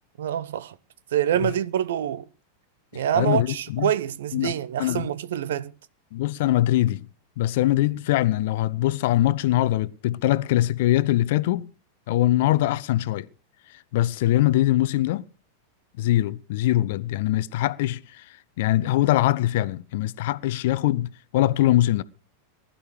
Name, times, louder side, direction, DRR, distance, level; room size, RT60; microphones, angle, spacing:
voice 1, 0.2-0.8 1.1-2.2 2.9-5.7, right 10 dB, 60° right, 0.8 m, -26 dB
voice 2, 3.1-3.9 4.3-4.5 4.8-5.1 6.1-7.0 7.4-11.7 12.1-13.3 13.9-15.3 16.0-18.2 18.6-22.0, left 15 dB, 50° left, 0.8 m, -22 dB
19.5 x 11.5 x 4.8 m
figure-of-eight pair, 90°, 0 cm